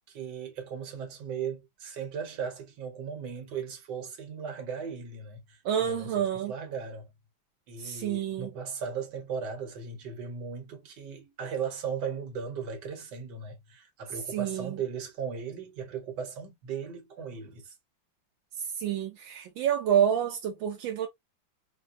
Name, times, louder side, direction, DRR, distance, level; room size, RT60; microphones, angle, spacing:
voice 1, 0.1-7.1 7.7-17.7, right 6 dB, 65° right, 1.7 m, -37 dB
voice 2, 5.6-6.5 7.8-8.5 14.3-14.8 18.6-21.1, right 9 dB, 80° right, 1.4 m, -28 dB
4.6 x 2.1 x 2.5 m
omnidirectional pair, 2.1 m